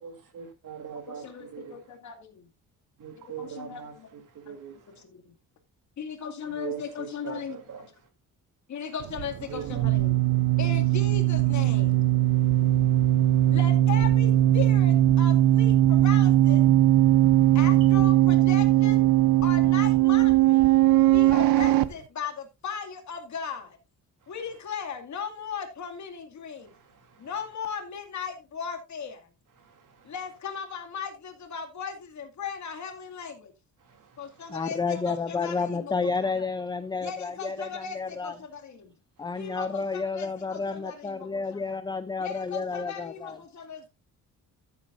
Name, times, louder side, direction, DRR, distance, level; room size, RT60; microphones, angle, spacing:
voice 1, 0.0-1.8 3.0-3.9 4.4-4.7 6.5-7.8 9.5-9.8 12.5-12.6 12.8-13.4 17.3-17.6 27.1-27.2 29.6-30.1 33.9-34.1, right 8 dB, 60° right, 3.0 m, -41 dB
voice 2, 1.1-2.5 3.1-4.1 4.5-4.6 6.0-7.9 8.7-10.2 10.6-12.1 13.5-16.7 17.5-19.1 19.4-20.7 21.1-23.8 24.3-26.7 27.2-29.3 30.0-33.5 34.2-36.6 37.0-38.9 39.3-41.8 42.2-43.9, left 6 dB, 55° left, 2.3 m, -37 dB
sound 1, 9.0-21.9, right 14 dB, 80° right, 0.8 m, -20 dB
voice 3, 34.5-38.3 39.2-43.4, left 4 dB, 15° left, 0.4 m, -31 dB
14.0 x 8.2 x 2.5 m
cardioid pair, 150°, 35 cm